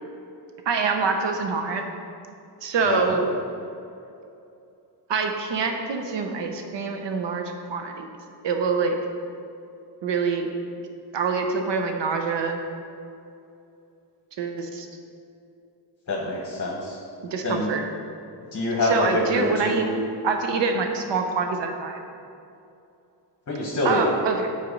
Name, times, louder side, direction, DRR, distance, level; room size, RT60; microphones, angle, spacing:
voice 1, 0.7-1.8 2.6-3.3 5.1-8.1 8.4-9.0 10.0-10.5 11.1-12.6 14.4-14.9 17.2-17.8 18.8-19.9 20.2-22.0 23.8-24.5, right 4 dB, 80° right, 4 dB, 0.9 m, -25 dB
voice 2, 16.1-17.0 17.4-17.7 18.5-19.9 23.5-24.0, left 2 dB, 40° left, -3 dB, 1.2 m, -25 dB
7.7 x 4.4 x 5.2 m, 2.7 s
cardioid pair, 105°, 42 cm